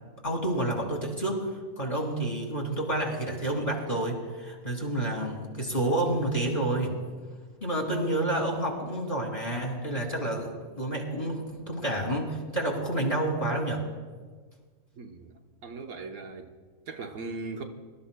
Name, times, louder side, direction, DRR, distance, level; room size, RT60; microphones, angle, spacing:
voice 1, 0.2-1.4 1.8-7.0 7.6-13.8, right 1 dB, 25° left, -1 dB, 2.4 m, -29 dB
voice 2, 15.0-15.3 15.6-16.5 16.9-17.6, right 3 dB, 85° right, 4 dB, 1.4 m, -38 dB
24.0 x 13.0 x 2.2 m, 1.5 s
omnidirectional pair, 1.4 m